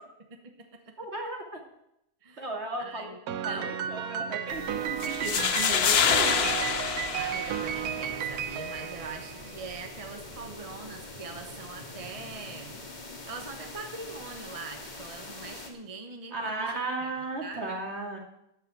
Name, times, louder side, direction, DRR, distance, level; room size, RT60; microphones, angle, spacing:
voice 1, 0.3-0.9 2.2-2.5 2.8-3.7 7.2-12.8 13.2-17.1 17.4-17.8, right 4 dB, 25° right, 5 dB, 1.2 m, -43 dB
voice 2, 1.0-1.4 2.4-3.1 3.4-6.5 16.3-18.2, right 2 dB, 45° right, 0 dB, 2.8 m, -35 dB
Piano, 3.3-9.8, right 9 dB, 75° right, 1.2 m, -33 dB
sound 1, 4.5-15.7, left 2 dB, 30° left, 1.9 m, -44 dB
sound 2, 5.0-8.0, left 7 dB, 50° left, 0.9 m, -26 dB
14.5 x 5.8 x 9.0 m, 0.81 s
omnidirectional pair, 1.6 m